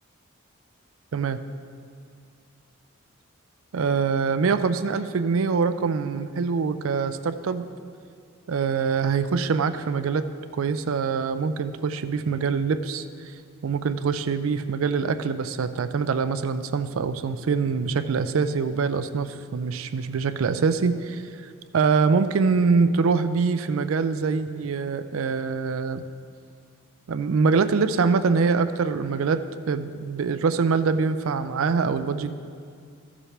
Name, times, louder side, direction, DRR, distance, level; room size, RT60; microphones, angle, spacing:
voice 1, 3.7-7.7 8.5-10.2 10.6-13.0 13.6-21.2 21.7-26.0 27.1-32.3, right 5 dB, 70° right, 11 dB, 0.4 m, -24 dB
14.0 x 7.4 x 3.3 m, 2.3 s
head